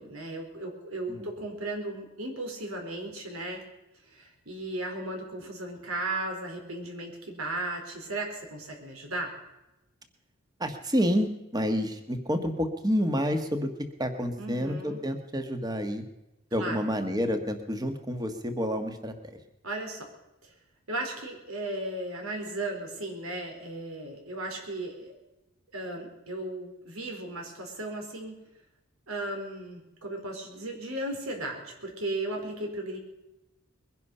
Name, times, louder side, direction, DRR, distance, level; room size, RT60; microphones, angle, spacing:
voice 1, 0.0-3.6 4.1-9.3 14.4-15.0 16.6-16.9 19.6-20.1 20.4-20.5 20.9-25.1 25.7-28.3 29.1-33.0, right 2 dB, 85° right, 2 dB, 4.4 m, -36 dB
voice 2, 10.6-13.7 14.0-16.0 16.5-19.4, equal, 20° right, 7 dB, 1.5 m, -29 dB
22.0 x 11.0 x 5.6 m, 0.95 s
head